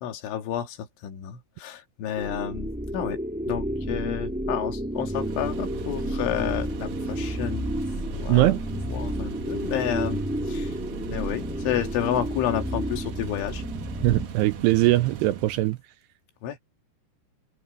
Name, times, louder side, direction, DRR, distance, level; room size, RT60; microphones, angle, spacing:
voice 1, 0.0-3.2 3.5-7.7 8.1-8.5 8.9-10.8 11.1-13.6 16.4-16.6, left 11 dB, 90° left, 4.7 m, -31 dB
sound 1, 2.2-14.3, equal, 5° right, 0.5 m, -31 dB
sound 2, 5.0-15.8, right 6 dB, 60° right, 3.2 m, -39 dB
voice 2, 14.0-15.8, right 17 dB, 80° right, 2.4 m, -21 dB
omnidirectional pair, 5.3 m